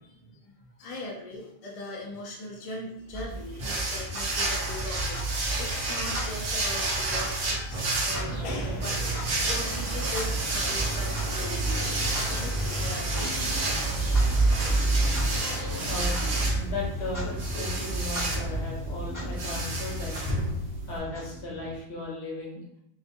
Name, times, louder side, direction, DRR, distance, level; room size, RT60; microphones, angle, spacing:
voice 1, 0.0-0.5 0.8-13.7, left 2 dB, 45° left, -2 dB, 0.5 m, -40 dB
Clock, 3.1-21.8, right 2 dB, 20° left, 1.0 m, -31 dB
sound 1, 3.6-21.0, right 2 dB, 60° right, 0.7 m, -32 dB
sound 2, 8.0-16.5, left 1 dB, 15° right, 0.9 m, -40 dB
voice 2, 15.9-16.2 16.5-20.2 20.9-22.6, left 2 dB, 85° left, -4 dB, 1.1 m, -36 dB
2.4 x 2.3 x 2.6 m, 0.76 s
omnidirectional pair, 1.1 m